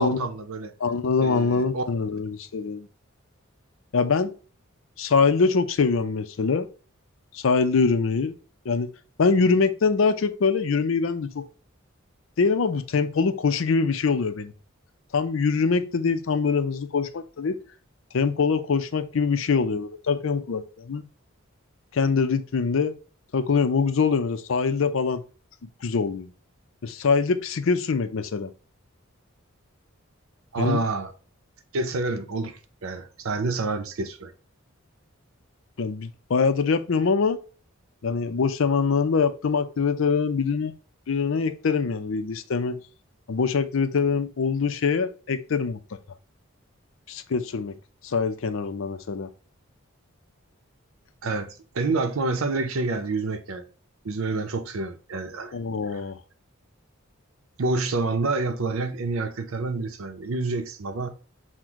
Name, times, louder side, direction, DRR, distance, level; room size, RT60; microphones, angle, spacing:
voice 1, 0.0-0.7 1.2-1.8 30.5-31.1 31.7-34.3 51.2-53.6 54.0-55.5 55.9-56.0 57.6-61.1, right 3 dB, 85° right, 0.6 m, -28 dB
voice 2, 0.8-2.9 3.9-4.3 5.0-6.7 7.3-8.4 8.7-8.9 9.2-11.4 12.4-14.5 15.1-17.6 18.1-21.1 21.9-22.9 23.3-25.2 25.8-26.3 26.8-28.5 30.6-30.8 35.8-37.4 38.0-40.7 41.1-42.8 43.3-45.8 47.1-47.7 48.0-49.3 55.5-56.2, left 5 dB, 70° left, 0.5 m, -24 dB
6.0 x 2.2 x 3.6 m
head